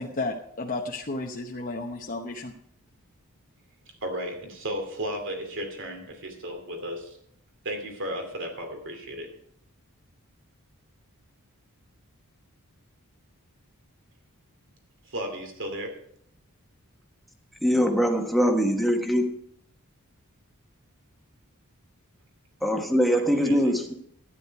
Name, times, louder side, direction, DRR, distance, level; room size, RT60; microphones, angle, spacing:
voice 1, 0.0-2.5, left 2 dB, 40° left, 0 dB, 0.9 m, -33 dB
voice 2, 4.0-7.2 7.6-9.4 15.0-16.0 23.1-23.7, equal, 60° right, 4 dB, 2.7 m, -34 dB
voice 3, 17.6-19.3 22.6-23.9, equal, ahead, 2 dB, 1.4 m, -22 dB
12.5 x 10.0 x 4.8 m, 0.68 s
head